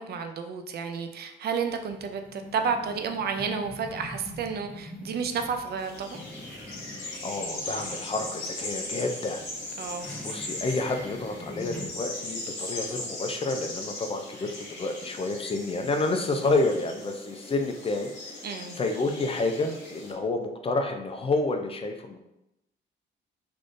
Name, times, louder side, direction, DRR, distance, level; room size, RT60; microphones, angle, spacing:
voice 1, 0.0-6.2 9.8-10.1 18.4-18.8, right 6 dB, 55° right, 6 dB, 0.4 m, -31 dB
sound 1, 1.7-11.9, left 1 dB, 5° left, 0.8 m, -44 dB
sound 2, 5.8-20.1, left 2 dB, 65° left, 1.2 m, -39 dB
voice 2, 7.2-9.4 10.2-18.1 18.8-22.2, left 2 dB, 30° left, 5 dB, 0.4 m, -29 dB
3.5 x 2.5 x 2.5 m, 0.88 s
cardioid pair, 90°, 20 cm